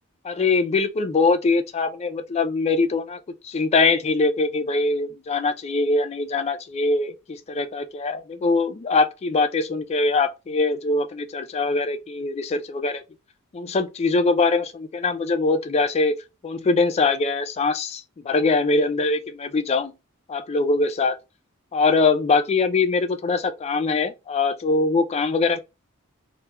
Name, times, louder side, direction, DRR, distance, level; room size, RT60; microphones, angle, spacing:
voice 1, 0.2-13.0 13.5-16.2 16.4-19.9 20.3-21.1 21.7-25.6, left 3 dB, 30° left, 0.3 m, -22 dB
2.2 x 2.1 x 2.9 m
head